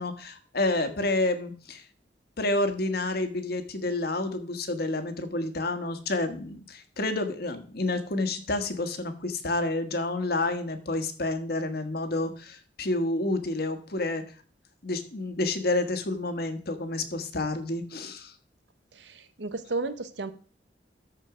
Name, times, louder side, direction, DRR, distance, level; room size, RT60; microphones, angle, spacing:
voice 1, 0.0-1.8 2.4-14.2 14.8-18.3, left 2 dB, 60° left, 8 dB, 1.4 m, -29 dB
voice 2, 18.9-20.3, right 3 dB, 90° right, 12 dB, 0.9 m, -33 dB
14.0 x 4.6 x 4.9 m, 0.43 s
head